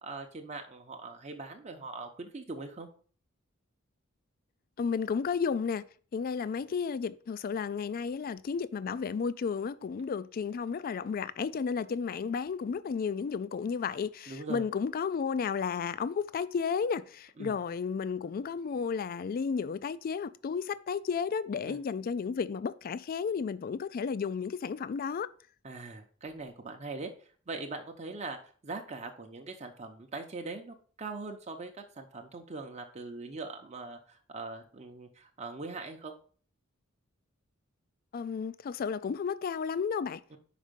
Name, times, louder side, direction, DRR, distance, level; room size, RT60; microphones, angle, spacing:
voice 1, 0.0-2.9 14.3-14.6 17.4-17.5 21.7-21.8 25.6-28.4 28.6-36.1 40.3-40.4, right 3 dB, 35° right, 0.8 m, -41 dB
voice 2, 4.8-5.8 6.1-25.3 38.1-40.2, left 6 dB, 45° left, 0.3 m, -33 dB
5.4 x 5.0 x 5.1 m
head